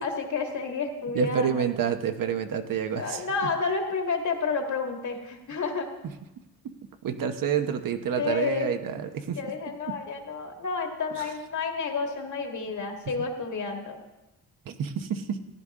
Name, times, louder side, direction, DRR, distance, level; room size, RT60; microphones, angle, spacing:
voice 1, 0.0-1.7 2.9-5.9 8.2-8.7 9.4-14.0, left 4 dB, 55° left, 3 dB, 1.9 m, -30 dB
voice 2, 1.1-3.2 6.6-6.7 7.0-9.4 9.9-10.0 14.7-15.4, right 7 dB, 65° right, 7 dB, 1.0 m, -28 dB
15.0 x 10.5 x 3.6 m, 1.0 s
cardioid pair, 130°, 36 cm